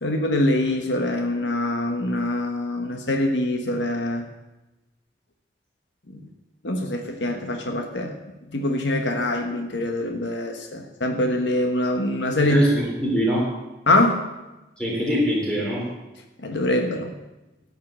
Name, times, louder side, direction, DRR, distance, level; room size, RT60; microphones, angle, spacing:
voice 1, 0.0-4.3 6.1-6.2 6.6-8.1 8.5-12.6 13.9-14.2 16.4-17.1, left 1 dB, 90° left, 3 dB, 1.3 m, -24 dB
voice 2, 12.4-13.5 14.8-15.9, equal, 5° left, -4 dB, 3.4 m, -23 dB
13.5 x 5.6 x 8.6 m, 1.0 s
head